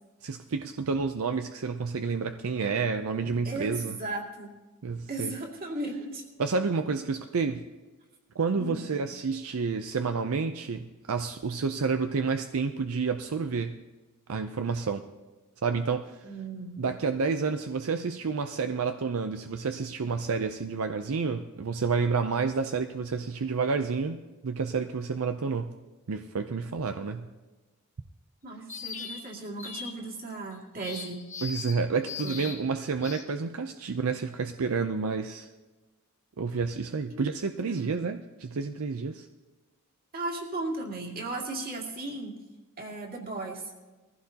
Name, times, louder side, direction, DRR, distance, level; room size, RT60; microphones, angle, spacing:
voice 1, 0.2-4.0 4.8-5.3 6.4-7.6 8.3-13.8 14.3-15.0 15.6-16.3 16.8-25.8 26.1-27.3 31.4-35.5 36.4-39.3, right 4 dB, 75° right, 7 dB, 0.6 m, -30 dB
voice 2, 3.4-4.5 5.1-6.2 8.6-8.9 16.2-16.8 28.4-31.2 32.2-32.4 37.1-37.3 37.6-37.9 40.1-42.4 42.8-43.6, right 2 dB, 45° right, 0 dB, 2.4 m, -36 dB
sound 1, 28.7-29.2 29.6-29.9 30.8-31.8 32.0-32.6 33.0-33.2, left 6 dB, 35° left, 1.4 m, -39 dB
21.0 x 15.5 x 2.9 m, 1.2 s
head